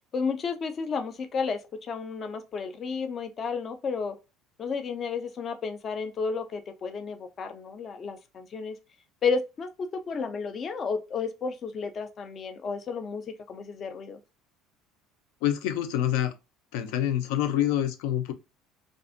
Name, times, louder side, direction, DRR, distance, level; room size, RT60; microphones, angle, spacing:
voice 1, 0.1-4.2 4.6-8.8 9.2-14.2, left 5 dB, 25° left, 0.3 m, -32 dB
voice 2, 15.4-16.3 16.7-18.3, left 11 dB, 85° left, 0.5 m, -26 dB
2.5 x 2.4 x 2.4 m
cardioid pair, 175°, 0 cm